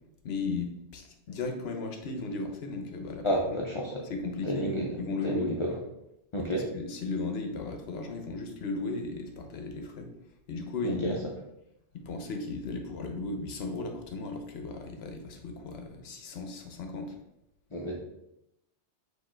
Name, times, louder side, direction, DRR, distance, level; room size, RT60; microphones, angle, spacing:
voice 1, 0.2-3.6 4.0-5.7 6.4-10.1 10.5-11.2 11.9-17.1, left 3 dB, 65° left, 4 dB, 0.9 m, -36 dB
voice 2, 3.2-4.0 4.5-4.8 5.2-5.7 6.3-6.7 10.8-11.1 17.7-18.0, equal, 40° left, -1 dB, 0.4 m, -30 dB
4.4 x 2.6 x 4.3 m, 0.86 s
omnidirectional pair, 1.2 m